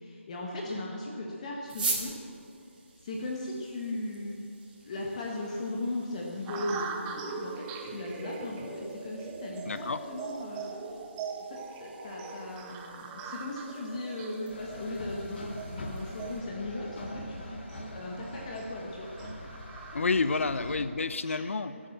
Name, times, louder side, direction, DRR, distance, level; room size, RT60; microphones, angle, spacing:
voice 1, 0.0-2.1 3.0-4.4 4.8-10.7 11.5-19.1 19.9-20.0 20.4-20.5 21.2-21.5 21.7-21.8, left 2 dB, 30° left, -2 dB, 1.6 m, -37 dB
sound 1, 1.6-16.4, right 4 dB, 40° right, 2.9 m, -44 dB
sound 2, 6.5-20.8, right 5 dB, 10° right, 0.7 m, -42 dB
voice 2, 9.6-10.0 19.9-21.7, left 4 dB, 70° left, 13 dB, 0.8 m, -29 dB
sound 3, 14.5-20.9, left 1 dB, 50° left, 2.6 m, -43 dB
19.5 x 8.7 x 6.8 m, 2.5 s
hypercardioid pair, 165°, 7 cm